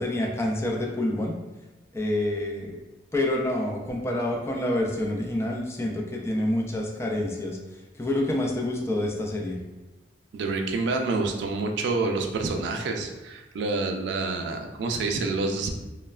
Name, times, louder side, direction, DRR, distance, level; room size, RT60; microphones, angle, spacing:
voice 1, 0.0-1.4 1.9-2.7 3.1-7.6 7.9-9.6, left 1 dB, 15° left, 0 dB, 0.3 m, -27 dB
voice 2, 10.3-15.7, right 3 dB, 80° right, 3 dB, 0.3 m, -28 dB
3.1 x 2.1 x 2.3 m, 1.1 s
head